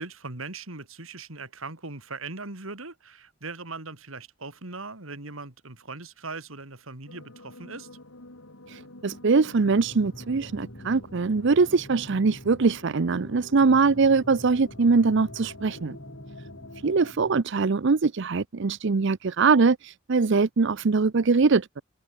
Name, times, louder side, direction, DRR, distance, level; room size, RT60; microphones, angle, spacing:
voice 1, 0.0-7.9 13.6-13.9, right 3 dB, 85° right, 3.4 m, -39 dB
sound 1, 7.1-17.1, left 2 dB, 85° left, 4.2 m, -48 dB
voice 2, 8.7-16.0 16.8-21.8, right 4 dB, 60° right, 0.6 m, -22 dB
sound 2, 9.5-17.4, equal, 25° left, 3.7 m, -46 dB
open air
head